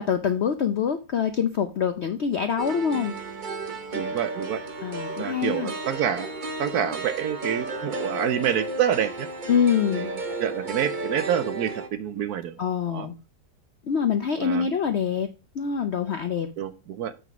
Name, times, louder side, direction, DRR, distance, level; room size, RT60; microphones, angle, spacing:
voice 1, 0.0-3.1 4.8-5.7 9.5-10.1 12.6-13.1 13.8-15.3 15.5-16.5, left 7 dB, 70° left, 8 dB, 0.6 m, -25 dB
sound 1, 2.6-11.9, right 2 dB, 45° right, 0.6 m, -33 dB
voice 2, 3.9-4.6 5.2-6.3 6.6-9.3 10.0-12.6 12.9-13.1 14.4-14.7 16.6-17.1, right 9 dB, 70° right, 12 dB, 1.0 m, -27 dB
8.3 x 3.9 x 5.8 m, 0.31 s
omnidirectional pair, 1.9 m